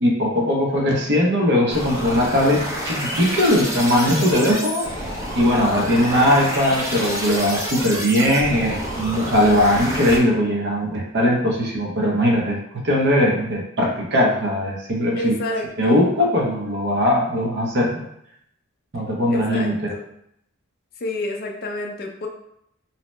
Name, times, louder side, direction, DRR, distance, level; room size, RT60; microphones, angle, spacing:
voice 1, 0.0-4.9 5.3-15.4 15.8-18.0 18.9-19.9, left 1 dB, 50° right, -2 dB, 0.7 m, -20 dB
sound 1, 1.7-10.2, equal, 15° right, 0.5 m, -29 dB
voice 2, 15.2-16.0 19.3-20.0 21.0-22.3, left 2 dB, 45° left, 2 dB, 0.4 m, -29 dB
2.7 x 2.0 x 3.1 m, 0.75 s
head